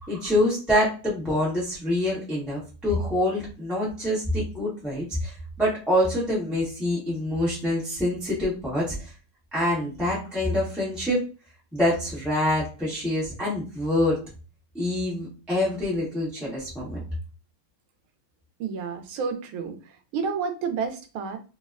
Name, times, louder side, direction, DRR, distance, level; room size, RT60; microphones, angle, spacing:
voice 1, 0.0-9.1 9.5-11.2 11.7-14.2 14.7-17.0, left 1 dB, ahead, -8 dB, 0.7 m, -26 dB
voice 2, 18.6-19.7 20.1-21.4, right 5 dB, 85° right, 6 dB, 1.5 m, -30 dB
3.8 x 2.1 x 2.4 m, 0.34 s
omnidirectional pair, 2.3 m